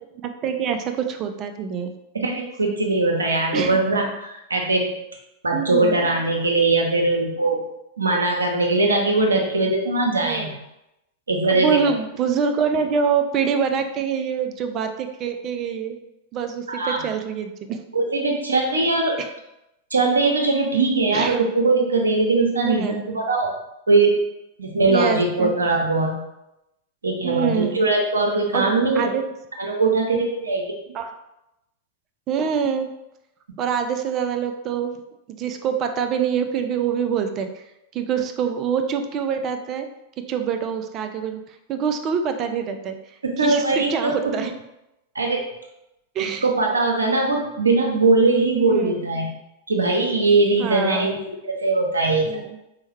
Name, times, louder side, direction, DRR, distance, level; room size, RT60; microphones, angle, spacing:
voice 1, 0.2-1.9 3.5-3.8 5.5-6.0 9.6-9.7 10.2-10.5 11.5-16.0 16.3-17.8 19.2-19.3 21.1-21.4 22.6-23.0 24.9-25.5 27.2-27.8 28.5-29.2 30.9-31.1 32.3-32.9 33.6-34.9 35.3-37.6 37.9-39.9 40.3-41.4 41.7-43.0 43.4-44.5 46.2-46.4 48.6-48.9 50.6-51.2 52.3-52.4, right 7 dB, 35° right, 7 dB, 0.3 m, -25 dB
voice 2, 2.1-4.9 5.4-7.6 8.0-10.6 11.3-11.9 16.7-17.1 17.9-19.2 19.9-23.5 23.9-24.2 24.6-26.2 27.0-29.1 29.6-30.7 43.2-44.3 45.1-45.4 46.2-49.3 49.7-51.2 51.4-52.4, right 3 dB, 75° right, 1 dB, 0.6 m, -21 dB
4.5 x 2.1 x 3.1 m, 0.89 s
figure-of-eight pair, 90°, 0 cm